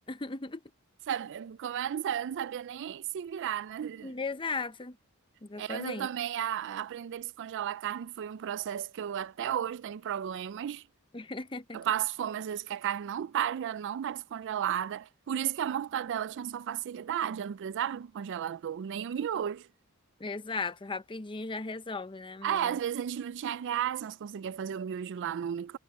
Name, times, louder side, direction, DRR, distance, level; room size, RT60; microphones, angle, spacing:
voice 1, 0.1-0.6 4.0-5.0 5.4-6.1 11.1-11.8 20.2-22.8, left 3 dB, 25° left, 0.7 m, -37 dB
voice 2, 1.1-4.1 5.6-10.8 11.7-19.7 22.4-25.8, right 9 dB, 55° right, 0.3 m, -33 dB
head